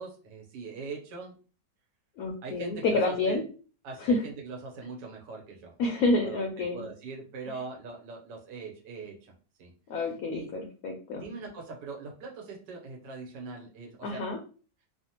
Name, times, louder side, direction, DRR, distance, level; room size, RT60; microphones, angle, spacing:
voice 1, 0.0-1.3 2.4-3.4 3.8-5.7 6.2-9.3 9.6-9.7 10.3-10.5 11.1-14.2, right 4 dB, 90° right, 0 dB, 1.5 m, -41 dB
voice 2, 2.2-3.4 4.0-4.2 5.8-6.8 9.9-11.2 14.0-14.4, left 2 dB, 70° left, 2 dB, 0.9 m, -28 dB
3.3 x 2.0 x 2.8 m, 0.39 s
omnidirectional pair, 1.9 m